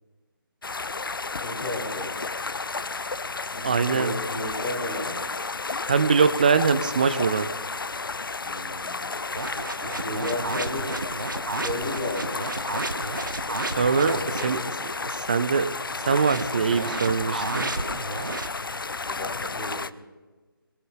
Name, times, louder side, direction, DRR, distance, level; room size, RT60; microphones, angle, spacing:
sound 1, 0.6-19.9, left 4 dB, 65° left, 0.4 m, -32 dB
voice 1, 1.4-2.1 3.5-5.2 8.4-9.2 9.8-10.9 11.5-12.4 14.1-14.7 19.0-19.8, left 1 dB, 20° left, -1 dB, 2.9 m, -33 dB
voice 2, 3.6-4.1 5.8-7.5 13.6-15.7 16.0-17.7, right 5 dB, 20° right, 13 dB, 0.4 m, -23 dB
sound 2, 9.4-14.6 16.0-18.5, right 3 dB, 60° right, 1.0 m, -32 dB
24.5 x 22.5 x 2.2 m, 1.3 s
figure-of-eight pair, 150°, 12 cm